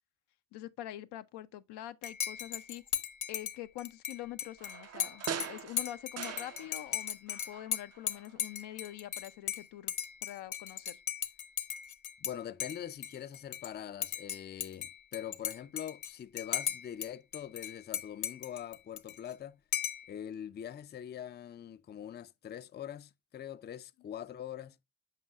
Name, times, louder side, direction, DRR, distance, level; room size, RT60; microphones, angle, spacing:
voice 1, 0.5-2.8 3.3-10.0 10.2-11.0, left 13 dB, 85° left, 0.6 m, -45 dB
Dishes pots and pans / Cutlery silverware / Chink clink, 2.0-12.3 12.6-13.7 14.0-17.1 17.3-19.3 19.7-20.1, left 9 dB, 50° left, 0.8 m, -37 dB
sound 1, 4.6-7.0 7.3-8.4 8.7-8.8, right 8 dB, 40° right, 0.5 m, -42 dB
voice 2, 12.2-19.6 20.1-24.8, left 10 dB, 30° left, 0.4 m, -43 dB
7.5 x 5.3 x 2.4 m
supercardioid pair, 50°, 39 cm